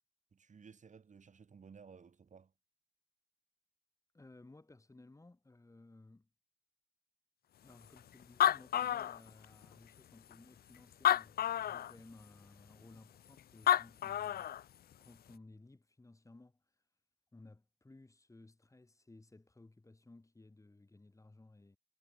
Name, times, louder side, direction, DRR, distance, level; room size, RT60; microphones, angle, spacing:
voice 1, 0.3-2.5, right 6 dB, 40° right, 2.3 m, -57 dB
voice 2, 4.1-6.3 7.6-14.5 15.0-16.6 17.3-21.8, left 2 dB, 15° left, 3.5 m, -59 dB
Animal, 8.0-9.7 10.3-10.4 10.9-11.9 13.4-13.5 13.7-14.6, left 11 dB, 50° left, 0.5 m, -30 dB
cardioid pair, 90°, 20 cm